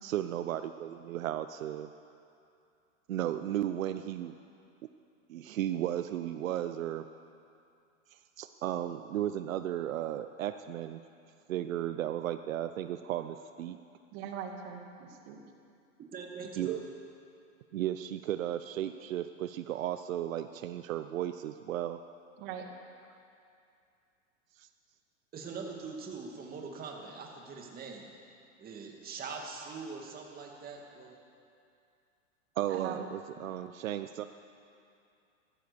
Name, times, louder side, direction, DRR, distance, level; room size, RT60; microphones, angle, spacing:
voice 1, 0.0-1.9 3.1-4.3 5.3-7.0 8.1-11.0 11.5-13.8 16.6-16.8 17.7-22.0 24.6-24.7 32.6-34.2, right 12 dB, 85° right, 10 dB, 0.7 m, -34 dB
voice 2, 14.1-15.4 22.4-22.6 32.7-33.0, right 8 dB, 50° right, 3 dB, 2.3 m, -41 dB
voice 3, 16.1-16.8 25.3-28.1 28.6-31.1, right 4 dB, 25° right, 1 dB, 2.3 m, -42 dB
15.0 x 13.5 x 7.0 m, 2.5 s
hypercardioid pair, 130°, 39 cm